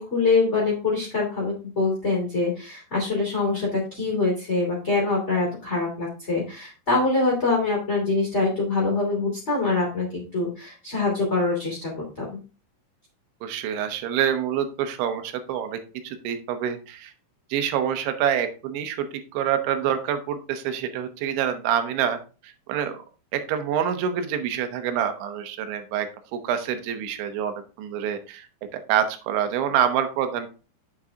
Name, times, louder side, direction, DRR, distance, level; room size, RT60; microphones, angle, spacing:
voice 1, 0.0-11.9 12.2-12.4, left 3 dB, 20° left, -3 dB, 2.3 m, -24 dB
voice 2, 13.4-15.8 16.0-17.1 17.5-19.1 19.3-22.2 22.4-23.0 23.3-28.5 28.7-30.5, right 9 dB, 85° right, 8 dB, 3.4 m, -26 dB
9.2 x 7.3 x 2.8 m, 0.34 s
omnidirectional pair, 5.2 m